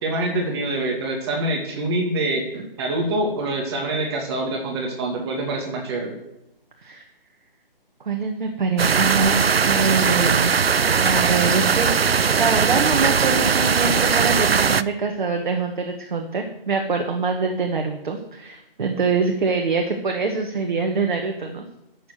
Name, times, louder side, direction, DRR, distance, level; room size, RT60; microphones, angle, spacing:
voice 1, 0.0-2.5 2.8-6.2, right 2 dB, 25° right, 1 dB, 2.3 m, -25 dB
voice 2, 8.1-10.5 11.0-21.7, right 4 dB, 55° right, 3 dB, 1.9 m, -24 dB
sound 1, 8.8-14.8, right 6 dB, 85° right, 0.6 m, -19 dB
11.5 x 7.3 x 7.7 m, 0.92 s
figure-of-eight pair, 150°, 30 cm